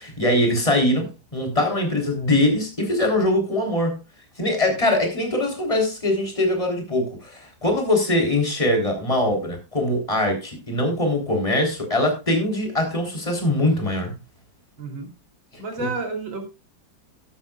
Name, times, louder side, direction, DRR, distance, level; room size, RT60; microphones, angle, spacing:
voice 1, 0.0-4.0 4.4-14.1 15.8-15.9, left 1 dB, 15° left, 3.9 m, -22 dB
voice 2, 14.8-15.1 15.6-16.5, right 3 dB, 80° right, 4.0 m, -30 dB
13.5 x 12.5 x 2.4 m
omnidirectional pair, 2.1 m